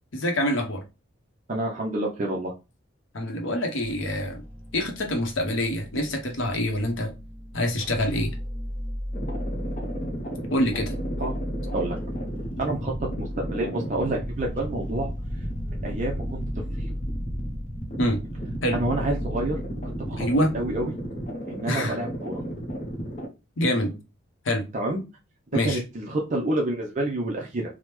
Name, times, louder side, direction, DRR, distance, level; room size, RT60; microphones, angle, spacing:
voice 1, 0.1-0.8 3.1-4.4 4.7-7.1 7.5-8.3 10.5-11.0 18.0-18.2 18.6-18.8 20.2-20.5 21.7-22.0 23.6-23.9 24.4-24.6 25.5-25.8, left 1 dB, 75° left, 3 dB, 0.8 m, -25 dB
voice 2, 1.5-2.5 11.2-11.3 11.7-12.0 12.6-15.1 15.8-16.4 16.8-16.9 18.7-20.3 20.5-21.0 21.5-22.4 24.7-25.0 25.5-27.8, right 1 dB, 35° right, -1 dB, 0.5 m, -28 dB
sound 1, 3.8-20.8, equal, 10° left, 0.8 m, -36 dB
sound 2, 9.1-23.3, right 1 dB, 35° left, 0.6 m, -34 dB
3.3 x 2.1 x 2.9 m, 0.28 s
head